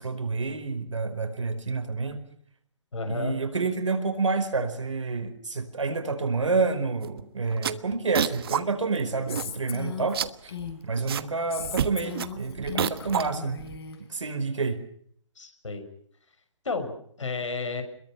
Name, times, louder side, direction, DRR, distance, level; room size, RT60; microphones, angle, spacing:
voice 1, 0.0-2.2 3.0-10.5 10.8-13.6 14.1-14.8, right 4 dB, 75° right, 8 dB, 5.0 m, -29 dB
voice 2, 2.9-3.4 15.4-15.9 16.6-17.8, left 4 dB, 80° left, 6 dB, 6.7 m, -32 dB
sound 1, 7.0-7.2 7.5-8.6 9.0-9.1 9.3-9.8 10.0-11.3 11.6-13.8, right 9 dB, 50° right, 1.3 m, -29 dB
Female speech woman speaking, 9.3-11.0 11.5-14.0, left 8 dB, 55° left, 5.2 m, -37 dB
27.5 x 22.5 x 5.9 m, 0.64 s
figure-of-eight pair, 140°, 16 cm